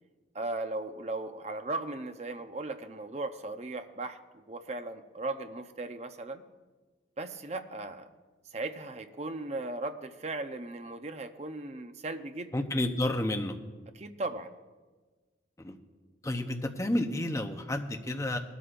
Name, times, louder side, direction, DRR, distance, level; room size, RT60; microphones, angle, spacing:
voice 1, 0.3-6.4 7.2-8.1 8.5-12.6 13.9-14.5, right 2 dB, 35° right, 8 dB, 0.6 m, -37 dB
voice 2, 12.5-13.6 15.6-15.8 16.2-18.4, left 1 dB, 15° left, 5 dB, 0.8 m, -30 dB
19.5 x 12.5 x 2.5 m, 1.3 s
head